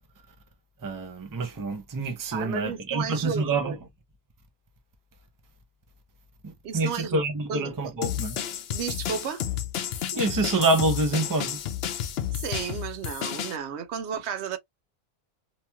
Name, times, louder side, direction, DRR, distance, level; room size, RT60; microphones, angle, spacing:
voice 1, 0.8-3.7 6.4-8.4 10.1-11.6, right 2 dB, 25° right, 0.5 m, -27 dB
voice 2, 2.3-3.8 6.6-7.2 7.5-8.0 8.7-9.4 12.3-14.6, right 7 dB, 90° right, 0.9 m, -33 dB
sound 1, 8.0-13.6, left 10 dB, 70° left, 0.8 m, -31 dB
3.0 x 2.9 x 2.2 m
omnidirectional pair, 1.1 m